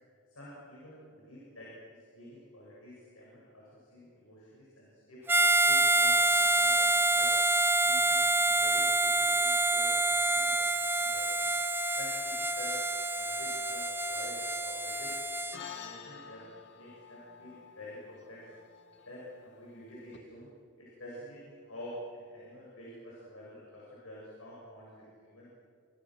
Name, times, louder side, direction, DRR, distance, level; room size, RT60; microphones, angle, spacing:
voice 1, 0.3-5.2 5.6-7.4 7.8-11.5 11.9-12.8 13.1-15.1 15.5-16.4 16.7-18.4 19.0-20.5 20.8-25.5, left 1 dB, 75° left, -6 dB, 7.9 m, -49 dB
Harmonica, 5.3-15.6, right 2 dB, 10° right, 0.7 m, -27 dB
sound 1, 15.5-20.2, left 6 dB, 55° left, 2.3 m, -49 dB
28.5 x 27.5 x 6.6 m, 2.2 s
head